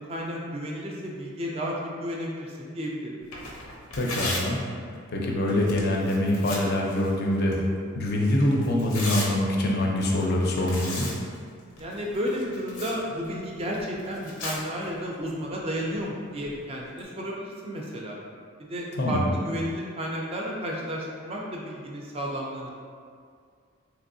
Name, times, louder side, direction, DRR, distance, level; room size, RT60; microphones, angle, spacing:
voice 1, 0.0-3.2 11.8-18.2 18.6-22.7, equal, 30° right, -2 dB, 0.3 m, -32 dB
Tearing, 3.2-17.0, left 2 dB, 90° left, 0.7 m, -39 dB
voice 2, 4.0-4.6 5.1-7.6 8.0-11.1 19.0-19.3, left 1 dB, 50° left, -1 dB, 0.4 m, -24 dB
3.3 x 3.0 x 2.6 m, 2.2 s
head